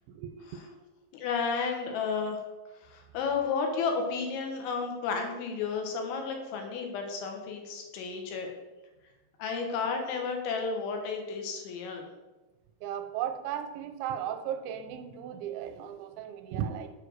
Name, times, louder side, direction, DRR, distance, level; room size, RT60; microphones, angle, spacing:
voice 1, 0.1-0.6 12.8-16.9, right 9 dB, 85° right, 8 dB, 3.0 m, -36 dB
voice 2, 1.1-2.4 2.7-8.6 9.4-12.1, left 5 dB, 90° left, 3 dB, 3.7 m, -32 dB
8.5 x 5.0 x 6.5 m, 1.1 s
omnidirectional pair, 5.3 m